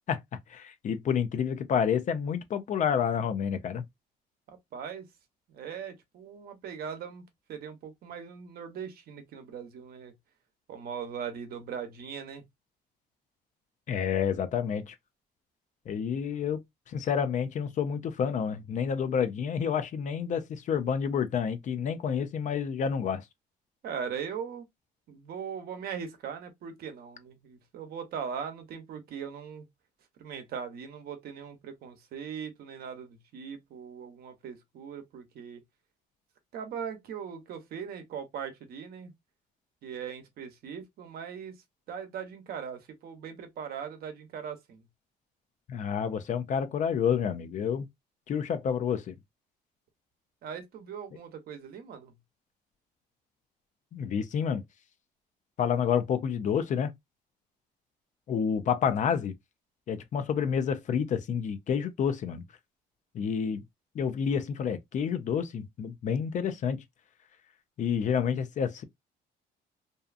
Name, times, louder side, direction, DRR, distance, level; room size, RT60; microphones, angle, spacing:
voice 1, 0.5-3.8 13.9-14.9 15.9-16.6 16.9-23.2 45.7-47.9 48.3-49.1 53.9-54.6 55.6-56.9 58.3-59.3 59.9-62.4 63.1-63.6 63.9-66.8 67.8-68.8, left 7 dB, 45° left, 0.5 m, -29 dB
voice 2, 4.5-5.1 5.5-7.2 7.5-10.1 10.7-12.4 23.8-24.7 25.1-29.7 30.2-35.6 36.5-39.1 39.8-44.9 50.4-52.2, right 7 dB, 65° right, 0.8 m, -40 dB
2.7 x 2.3 x 2.3 m
cardioid pair, 110°, 17 cm